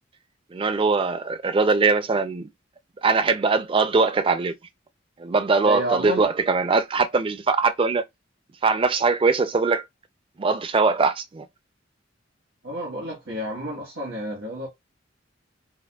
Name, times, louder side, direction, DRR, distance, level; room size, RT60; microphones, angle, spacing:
voice 1, 0.5-2.5 3.0-4.5 5.2-8.0 8.6-9.8 10.4-11.5, right 4 dB, 30° right, 0.4 m, -21 dB
voice 2, 5.6-6.3 12.6-14.7, right 1 dB, 85° right, 1.3 m, -30 dB
4.5 x 2.1 x 2.3 m
head